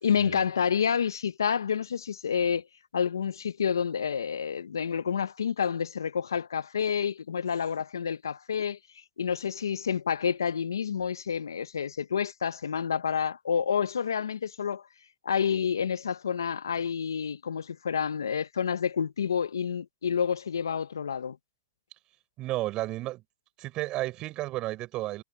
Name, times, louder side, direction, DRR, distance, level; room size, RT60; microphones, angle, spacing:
voice 1, 0.0-2.7 2.9-8.8 9.2-14.8 15.2-21.4, left 7 dB, 80° left, 1.6 m, -29 dB
voice 2, 22.4-23.2 23.6-25.2, right 17 dB, 40° right, 7.2 m, -32 dB
hypercardioid pair, 105°, 2 cm